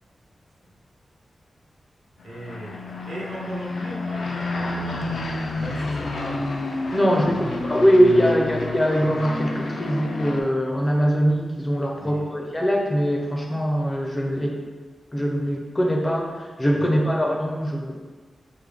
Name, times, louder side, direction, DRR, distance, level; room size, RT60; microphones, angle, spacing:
sound 1, 2.2-10.4, left 2 dB, 90° left, 0.4 m, -30 dB
voice 1, 2.2-6.6 7.2-7.6 8.2-8.3 11.9-12.3 16.7-17.1, right 1 dB, 80° right, -6 dB, 1.0 m, -37 dB
voice 2, 6.9-14.6 15.1-17.9, equal, 15° left, 0 dB, 0.4 m, -22 dB
4.6 x 2.1 x 3.4 m, 1.4 s
wide cardioid pair, 175°, 0 cm